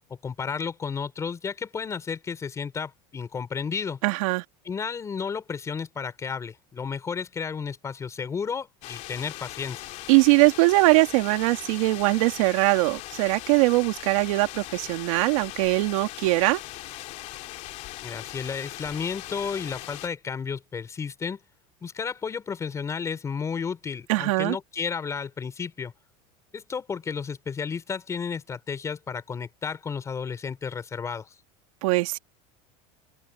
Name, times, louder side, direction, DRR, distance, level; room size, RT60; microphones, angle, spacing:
voice 1, 0.2-4.0 4.6-9.9 18.0-21.4 21.8-25.9 26.5-31.3, left 6 dB, 15° left, 5.0 m, -32 dB
voice 2, 4.0-4.4 10.1-16.6 24.1-24.5 31.8-32.2, right 23 dB, 75° right, 2.9 m, -21 dB
sound 1, 8.8-20.1, left 17 dB, 45° left, 3.0 m, -40 dB
open air
cardioid pair, 170°, 18 cm